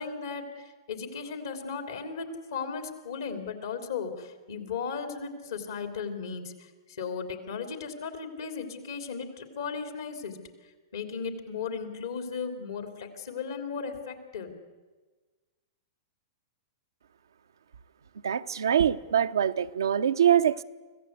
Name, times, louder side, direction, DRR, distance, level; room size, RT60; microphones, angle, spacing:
voice 1, 0.0-6.7 7.0-10.4 10.9-14.6, left 5 dB, 75° left, 6 dB, 3.3 m, -36 dB
voice 2, 18.2-20.6, right 9 dB, 80° right, 10 dB, 0.7 m, -24 dB
24.5 x 16.0 x 8.3 m, 1.3 s
hypercardioid pair, 110°, 2 cm